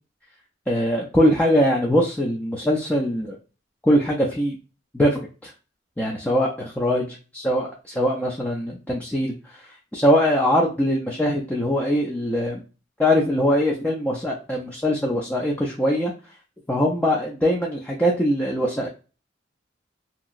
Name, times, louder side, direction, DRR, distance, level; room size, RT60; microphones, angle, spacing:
voice 1, 0.7-3.4 3.8-4.6 4.9-5.5 6.0-12.6 13.0-16.1 16.7-18.9, equal, 10° left, -2 dB, 0.4 m, -22 dB
2.9 x 2.7 x 2.4 m, 0.34 s
head